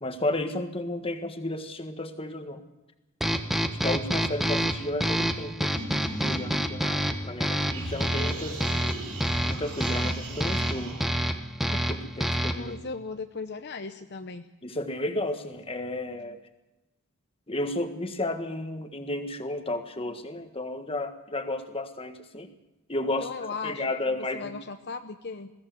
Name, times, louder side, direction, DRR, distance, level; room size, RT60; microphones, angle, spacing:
voice 1, 0.0-2.6 3.8-5.7 6.0-8.6 9.4-10.9 11.7-12.8 14.6-16.4 17.5-22.5 22.9-23.3 23.6-24.5, left 1 dB, 25° left, 7 dB, 1.6 m, -33 dB
sound 1, 3.2-12.8, equal, ahead, 1.1 m, -28 dB
sound 2, 5.7-7.4 7.7-11.2, right 1 dB, 85° right, 5.2 m, -39 dB
voice 2, 12.6-14.5 23.2-25.5, left 4 dB, 50° left, 7 dB, 0.9 m, -37 dB
21.5 x 16.0 x 7.8 m, 1.0 s
head